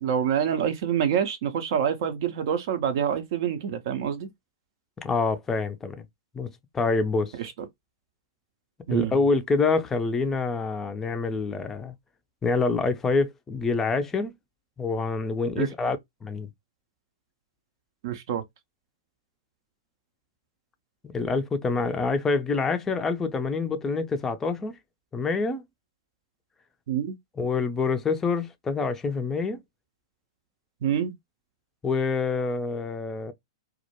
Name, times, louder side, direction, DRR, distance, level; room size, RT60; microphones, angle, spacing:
voice 1, 0.0-4.3 7.4-7.5 8.9-9.1 15.6-15.7 18.0-18.4 26.9-27.2 30.8-31.1, right 8 dB, 55° right, 0.4 m, -26 dB
voice 2, 5.0-6.0 6.3-7.3 8.9-11.9 12.4-14.3 14.8-16.0 16.2-16.5 21.1-24.8 25.1-25.6 27.4-29.6 31.8-33.3, left 4 dB, 15° left, 0.4 m, -26 dB
2.3 x 2.1 x 2.8 m
figure-of-eight pair, 105°, 2 cm